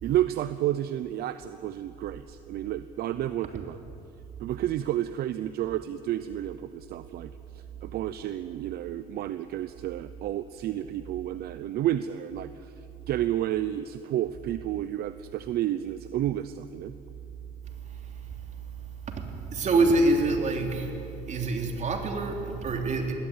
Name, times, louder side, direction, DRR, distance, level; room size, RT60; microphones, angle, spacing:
voice 1, 0.0-3.8 4.4-12.7 13.1-16.9, right 12 dB, 70° right, 13 dB, 0.7 m, -31 dB
voice 2, 19.5-20.9 21.3-23.1, right 2 dB, 45° right, 3 dB, 3.4 m, -25 dB
21.0 x 17.5 x 9.7 m, 2.9 s
cardioid pair, 110°, 17 cm